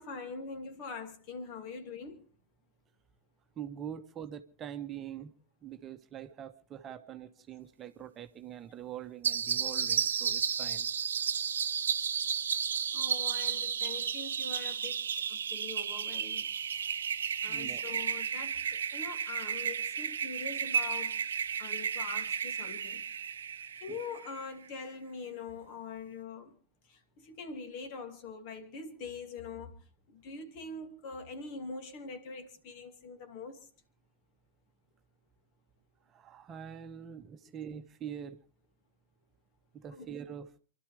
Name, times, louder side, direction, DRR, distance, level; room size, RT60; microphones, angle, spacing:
voice 1, 0.0-2.3 12.9-15.0 15.3-16.5 17.4-21.1 21.6-23.0 23.8-26.5 27.2-29.7 30.1-33.7 40.0-40.1, left 4 dB, 45° left, 2.5 m, -43 dB
voice 2, 3.6-5.3 5.6-10.9 17.5-17.8 23.9-24.0 36.1-38.4 39.7-40.5, right 9 dB, 25° right, 1.1 m, -44 dB
sound 1, 9.2-24.5, right 7 dB, 65° right, 0.8 m, -33 dB
28.5 x 12.5 x 3.4 m
figure-of-eight pair, 90°, 0 cm